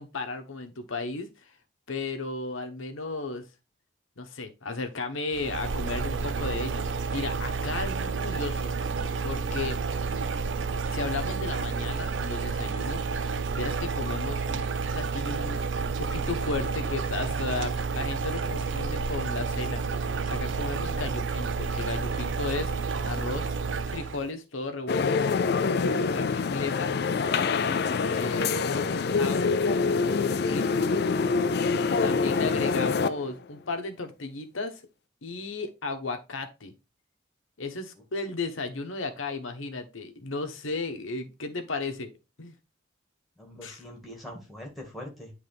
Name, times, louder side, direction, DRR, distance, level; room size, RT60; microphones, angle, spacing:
voice 1, 0.0-1.5 1.9-3.4 4.2-8.7 9.2-9.8 10.9-13.1 13.6-14.6 14.9-15.6 16.0-23.6 23.9-25.2 25.7-27.0 28.0-29.5 29.9-30.9 32.0-34.8 35.2-36.7 37.6-42.1 42.4-42.5 43.6-43.8, left 3 dB, 85° left, 7 dB, 1.0 m, -35 dB
sound 1, 5.3-24.3, right 4 dB, 70° right, 0.5 m, -30 dB
sound 2, 24.9-33.3, left 4 dB, 55° left, 0.4 m, -25 dB
voice 2, 43.4-45.3, left 1 dB, ahead, 0 dB, 1.8 m, -43 dB
9.5 x 3.4 x 3.4 m, 0.28 s
head